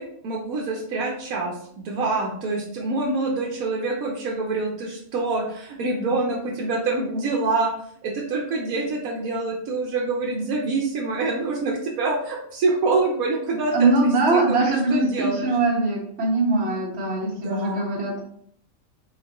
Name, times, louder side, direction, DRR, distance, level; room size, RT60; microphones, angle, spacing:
voice 1, 0.0-7.7 8.0-15.5 17.2-17.9, right 3 dB, 85° right, -2 dB, 1.2 m, -26 dB
voice 2, 13.7-18.2, right 3 dB, 50° right, -6 dB, 1.8 m, -22 dB
4.3 x 4.2 x 3.0 m, 0.67 s
omnidirectional pair, 1.5 m